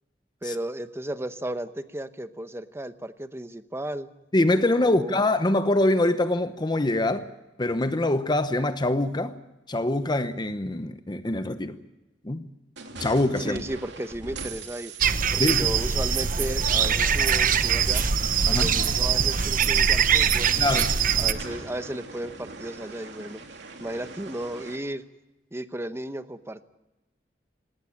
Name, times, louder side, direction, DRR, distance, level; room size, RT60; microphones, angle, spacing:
voice 1, 0.4-4.1 4.8-5.1 13.4-14.9 15.3-18.0 18.5-20.5 21.2-23.4 23.8-25.0 25.5-26.6, right 1 dB, 15° right, 0.9 m, -34 dB
voice 2, 4.3-7.3 7.6-9.4 9.7-11.8 12.2-12.5 13.0-13.6 15.4-15.8 18.5-18.7 20.6-20.9, left 2 dB, 25° left, 0.9 m, -24 dB
sound 1, 12.8-24.8, right 3 dB, 75° right, 2.8 m, -42 dB
sound 2, 15.0-21.3, right 7 dB, 50° right, 0.9 m, -22 dB
19.0 x 18.0 x 8.7 m
head